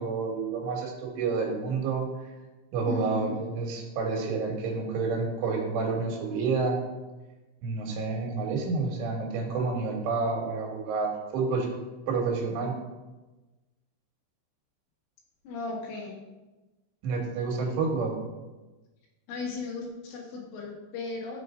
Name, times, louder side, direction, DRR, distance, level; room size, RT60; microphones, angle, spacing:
voice 1, 0.0-2.1 2.7-6.8 7.6-11.7 12.1-12.7 17.0-18.2, right 4 dB, 80° right, 1 dB, 4.2 m, -29 dB
voice 2, 2.9-3.4 15.4-16.2 19.3-21.4, left 4 dB, 90° left, -2 dB, 4.5 m, -36 dB
14.0 x 6.8 x 3.8 m, 1.1 s
omnidirectional pair, 5.5 m